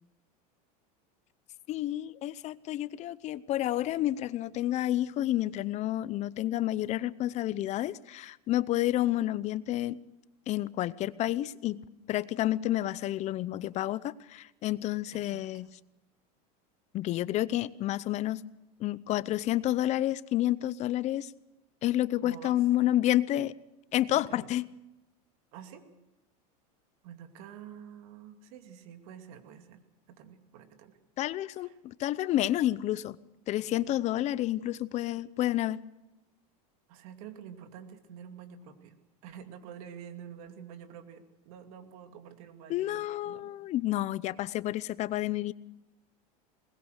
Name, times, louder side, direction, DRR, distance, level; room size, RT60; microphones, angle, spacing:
voice 1, 1.7-10.0 10.5-15.7 16.9-18.4 18.8-21.3 21.8-23.5 23.9-24.6 31.2-33.2 33.5-35.8 42.7-45.5, left 14 dB, 35° left, 0.7 m, -30 dB
voice 2, 15.1-15.4 22.2-22.9 24.1-24.5 25.5-25.9 27.0-29.8 30.1-31.0 31.6-31.7 36.9-43.5, right 8 dB, 70° right, 2.6 m, -48 dB
22.0 x 20.0 x 6.5 m
supercardioid pair, 140°, 19 cm